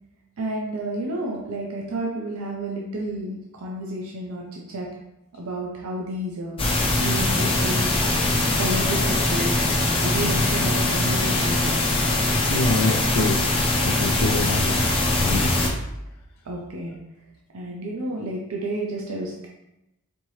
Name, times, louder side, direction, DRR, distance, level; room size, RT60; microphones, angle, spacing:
voice 1, 0.4-4.9 5.3-6.6 7.0-8.0 8.6-11.8 16.5-17.0 17.5-19.5, right 1 dB, 75° right, -2 dB, 0.6 m, -31 dB
sound 1, 6.6-15.7, left 2 dB, 25° left, 0.6 m, -22 dB
voice 2, 12.5-13.4 13.8-14.8 15.2-15.7, left 3 dB, 90° left, -1 dB, 0.5 m, -26 dB
4.4 x 2.7 x 3.1 m, 0.89 s
head